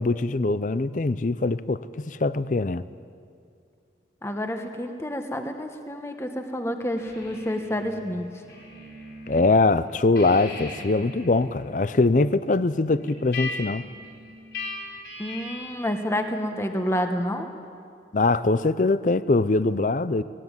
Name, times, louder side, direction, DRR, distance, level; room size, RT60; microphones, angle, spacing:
voice 1, 0.0-2.8 9.3-13.8 18.1-20.2, left 3 dB, 45° left, 15 dB, 0.5 m, -22 dB
voice 2, 4.2-8.3 15.2-17.5, equal, 15° left, 5 dB, 1.1 m, -29 dB
sound 1, 7.0-9.4 9.8-15.9, left 3 dB, 65° left, 4.3 m, -39 dB
18.0 x 17.5 x 9.6 m, 2.3 s
head